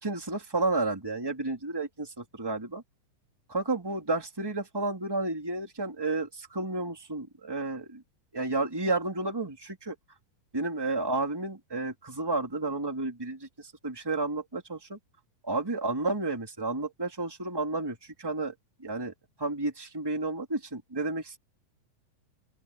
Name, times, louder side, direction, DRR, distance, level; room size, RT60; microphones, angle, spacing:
voice 1, 0.0-2.8 3.5-8.0 8.3-9.9 10.5-15.0 15.4-18.5 18.8-19.1 19.4-21.4, right 2 dB, 5° right, 2.4 m, -31 dB
open air
omnidirectional pair, 5.9 m